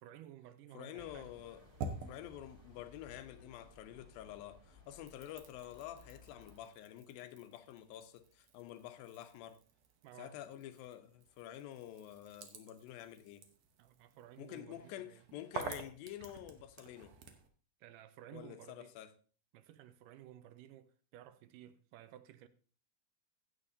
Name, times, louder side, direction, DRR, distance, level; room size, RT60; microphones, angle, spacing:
voice 1, 0.0-1.3 10.0-10.4 13.8-15.2 17.8-18.9 19.5-22.5, right 12 dB, 80° right, 2.1 m, -55 dB
voice 2, 0.7-1.6 2.0-9.6 10.2-13.5 14.4-17.2 18.3-19.1, left 12 dB, 85° left, 2.6 m, -49 dB
sound 1, 1.0-6.6, left 2 dB, 15° right, 1.1 m, -60 dB
sound 2, 1.2-3.9 4.2-17.5, right 4 dB, 65° right, 1.7 m, -50 dB
15.5 x 7.6 x 2.7 m
omnidirectional pair, 4.0 m